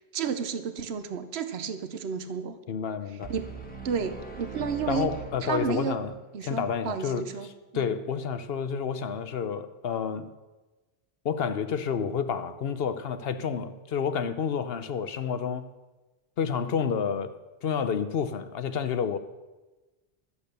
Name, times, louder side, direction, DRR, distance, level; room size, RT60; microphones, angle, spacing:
voice 1, 0.1-2.6 3.3-3.5 3.8-5.1 5.4-6.0 6.3-7.5 7.7-7.9, right 7 dB, 80° right, 1.1 m, -31 dB
voice 2, 2.7-3.3 4.9-6.1 6.4-10.3 11.2-15.7 16.4-17.3 17.6-19.2, left 7 dB, 70° left, 1.0 m, -30 dB
sound 1, 3.2-6.3, right 4 dB, 10° left, 1.6 m, -41 dB
12.5 x 8.3 x 6.7 m
omnidirectional pair, 1.1 m